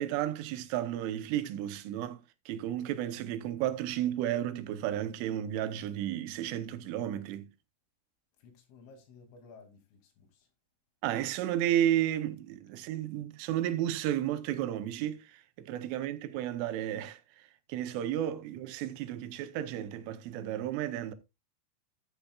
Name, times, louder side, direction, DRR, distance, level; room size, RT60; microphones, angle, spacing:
voice 1, 0.0-2.2 2.5-7.5 11.0-21.1, right 11 dB, 80° right, 3.3 m, -33 dB
voice 2, 8.4-10.5, left 4 dB, 85° left, 5.0 m, -55 dB
13.5 x 8.5 x 2.3 m
omnidirectional pair, 5.7 m